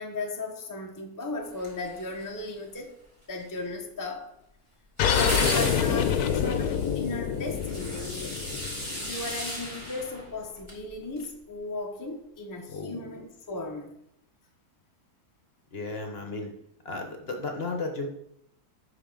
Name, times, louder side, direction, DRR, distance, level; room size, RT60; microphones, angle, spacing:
voice 1, 0.0-2.9 3.3-4.3 5.0-8.4 9.0-13.9, left 2 dB, 15° left, 2 dB, 0.7 m, -36 dB
sound 1, 1.6-2.5 5.0-10.8 11.2-11.3, equal, 20° right, 3.1 m, -36 dB
sound 2, 5.0-10.0, left 8 dB, 75° left, 1.2 m, -27 dB
voice 2, 12.7-13.2 15.7-16.5 16.8-18.1, left 3 dB, 45° left, 3 dB, 1.1 m, -34 dB
8.5 x 5.8 x 3.8 m, 0.75 s
omnidirectional pair, 1.6 m